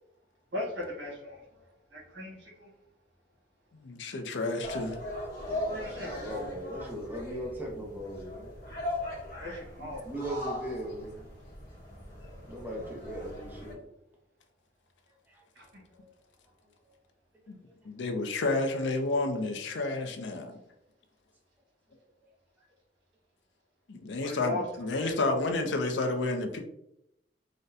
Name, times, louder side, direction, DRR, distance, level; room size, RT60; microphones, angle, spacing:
voice 1, 0.5-2.7 5.7-6.5 9.4-10.1 15.5-15.6 24.2-24.6 24.9-25.1, left 2 dB, 85° right, 1.3 m, -39 dB
voice 2, 3.7-5.0 17.5-17.6 17.8-20.6 23.9-26.6, left 2 dB, 75° left, 0.5 m, -30 dB
sound 1, 4.6-13.7, left 1 dB, 55° left, 0.9 m, -39 dB
voice 3, 5.4-8.5 9.8-11.3 12.5-13.8 15.3-15.4 16.0-16.1, equal, 10° right, 0.6 m, -39 dB
3.9 x 2.1 x 2.6 m
head